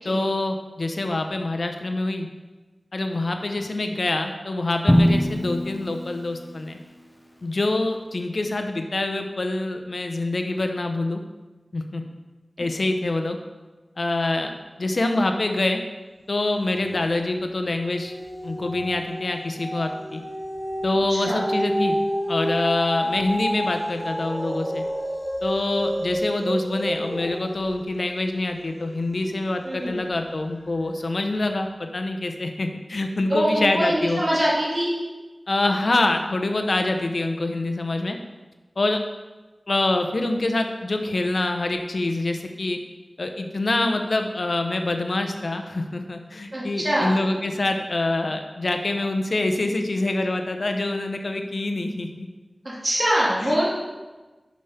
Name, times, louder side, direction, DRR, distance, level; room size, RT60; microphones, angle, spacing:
voice 1, 0.0-2.3 2.9-6.8 7.4-11.2 11.7-12.0 12.6-13.4 14.0-14.5 14.8-15.8 16.3-18.1 18.4-20.2 20.8-22.0 22.3-24.8 25.4-34.2 35.5-38.2 38.8-39.0 39.7-42.8 43.2-52.3 53.4-53.6, left 2 dB, 70° left, 5 dB, 0.7 m, -25 dB
Drum, 4.9-6.9, equal, 10° left, 0.9 m, -22 dB
sound 1, 16.7-17.3 17.6-30.1 30.7-30.8, equal, 15° right, 1.5 m, -30 dB
voice 2, 21.1-21.5 29.6-30.0 33.3-34.9 46.5-47.1 52.6-53.6, equal, 40° right, -8 dB, 2.5 m, -23 dB
5.3 x 5.1 x 5.7 m, 1.2 s
cardioid pair, 40°, 0 cm